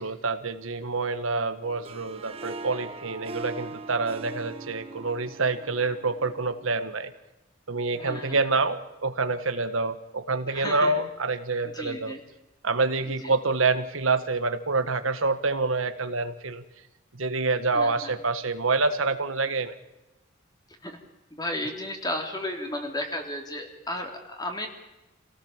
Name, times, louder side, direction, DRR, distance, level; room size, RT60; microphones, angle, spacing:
voice 1, 0.0-7.1 7.7-12.1 12.6-16.6 17.1-19.7, right 3 dB, 75° right, 9 dB, 1.5 m, -27 dB
Harp, 1.6-6.9, right 3 dB, 30° right, 1.3 m, -41 dB
voice 2, 7.9-8.4 10.5-10.9 11.6-12.2 13.2-13.3 17.7-18.2 20.8-21.0 21.3-24.7, left 1 dB, 20° left, 3 dB, 3.4 m, -33 dB
27.5 x 17.5 x 7.3 m, 1.0 s
head